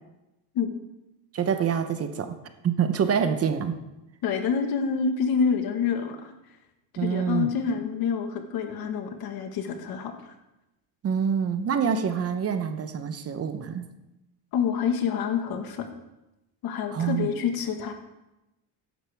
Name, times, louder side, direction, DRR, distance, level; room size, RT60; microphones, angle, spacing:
voice 1, 1.3-2.3 2.6-3.8 7.0-7.5 11.0-13.9 16.9-17.3, right 7 dB, 35° right, 9 dB, 0.8 m, -26 dB
voice 2, 4.2-6.3 7.0-10.3 14.5-15.9 16.6-17.9, left 6 dB, 60° left, 6 dB, 1.6 m, -27 dB
14.5 x 10.5 x 3.5 m, 0.97 s
cardioid pair, 135°, 41 cm